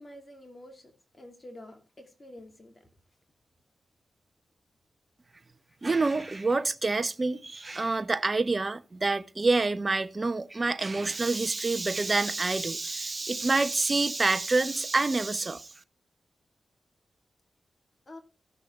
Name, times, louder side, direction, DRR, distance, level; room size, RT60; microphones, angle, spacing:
voice 1, 0.0-2.9 5.7-5.8 6.2-6.3 18.1-18.2, left 1 dB, 30° left, 2.3 m, -48 dB
voice 2, 5.8-15.7, right 3 dB, 40° right, 0.9 m, -27 dB
16.0 x 6.3 x 3.2 m
cardioid pair, 50°, 0 cm